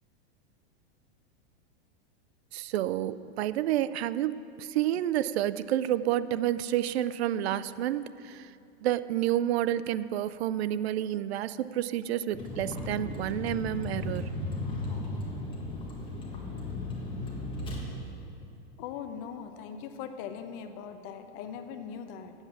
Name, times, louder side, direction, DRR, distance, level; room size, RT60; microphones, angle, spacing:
voice 1, 2.5-8.5 8.8-14.3, right 12 dB, 90° right, 16 dB, 0.5 m, -29 dB
Vehicle, 12.3-17.8, left 2 dB, 15° left, 1.6 m, -35 dB
voice 2, 18.8-22.3, left 7 dB, 40° left, 8 dB, 0.8 m, -40 dB
9.2 x 8.0 x 7.1 m, 2.6 s
supercardioid pair, 150°, 31 cm